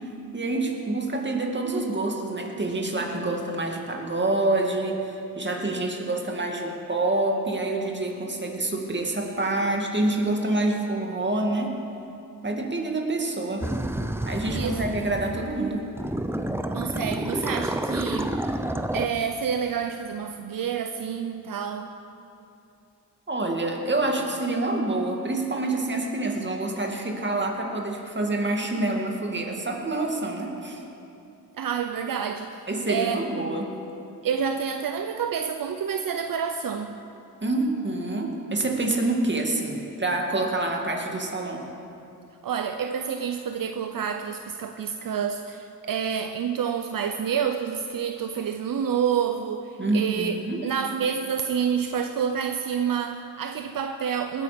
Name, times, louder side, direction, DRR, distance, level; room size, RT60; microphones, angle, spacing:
voice 1, 0.3-11.8 12.4-13.7 14.2-15.9 23.3-30.8 32.7-33.7 37.4-41.6 49.8-50.6, right 2 dB, 30° right, 1 dB, 2.3 m, -27 dB
sound 1, 13.6-15.6 16.0-19.1, right 1 dB, 5° right, 0.7 m, -29 dB
voice 2, 14.5-14.8 16.7-18.3 18.9-21.9 31.6-33.2 34.2-37.0 42.4-50.4 50.6-54.4, right 7 dB, 70° right, 7 dB, 0.7 m, -28 dB
20.0 x 9.4 x 5.2 m, 2.7 s
cardioid pair, 65°, 35 cm